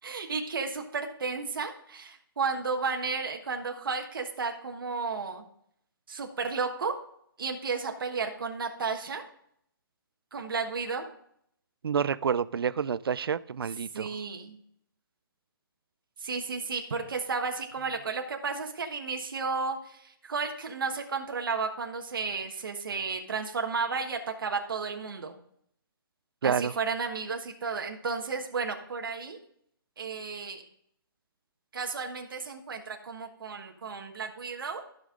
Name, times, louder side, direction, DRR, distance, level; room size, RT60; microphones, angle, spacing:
voice 1, 0.0-5.4 6.1-6.9 7.4-9.2 10.3-11.1 13.9-14.6 16.2-25.3 26.4-29.4 30.0-30.6 31.7-34.8, right 4 dB, 65° right, 1.3 m, -33 dB
voice 2, 11.8-14.2 26.4-26.7, right 7 dB, 90° right, 0.4 m, -28 dB
14.5 x 5.5 x 3.7 m
hypercardioid pair, 170°, 12 cm